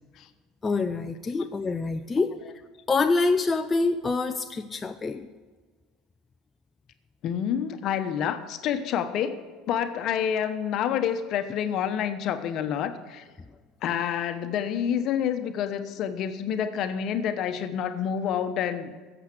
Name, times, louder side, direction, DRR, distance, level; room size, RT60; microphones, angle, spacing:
voice 1, 0.6-2.3 2.9-5.2, left 3 dB, 25° left, 7 dB, 0.6 m, -26 dB
voice 2, 7.2-9.4 9.7-13.2 13.8-18.9, left 8 dB, 55° left, 9 dB, 1.1 m, -28 dB
14.0 x 8.1 x 6.2 m, 1.4 s
hypercardioid pair, 80°, 0 cm